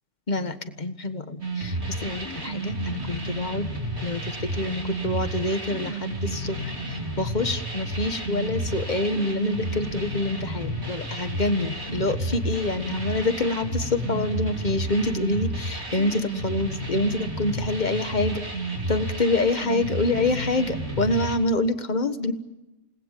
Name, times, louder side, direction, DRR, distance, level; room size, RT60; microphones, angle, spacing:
voice 1, 0.3-3.7 4.0-6.7 7.2-18.4 18.9-22.3, left 2 dB, 40° left, 10 dB, 1.5 m, -26 dB
sound 1, 1.4-21.4, right 1 dB, 65° right, 4.1 m, -31 dB
29.0 x 19.5 x 7.6 m, 1.0 s
omnidirectional pair, 1.2 m